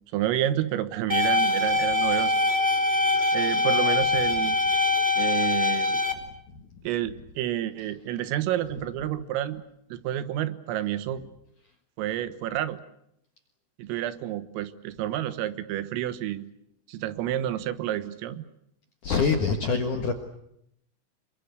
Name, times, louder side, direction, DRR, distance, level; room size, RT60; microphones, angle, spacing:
voice 1, 0.1-2.4 3.3-4.6 5.2-6.1 6.9-9.6 9.9-11.2 12.0-12.8 13.8-16.5 16.9-18.5, right 12 dB, 85° right, 12 dB, 3.9 m, -29 dB
sound 1, 1.1-6.1, left 2 dB, 15° right, 1.5 m, -23 dB
voice 2, 19.0-20.1, left 5 dB, 65° left, 4 dB, 2.0 m, -25 dB
27.5 x 23.5 x 8.2 m, 0.78 s
omnidirectional pair, 5.9 m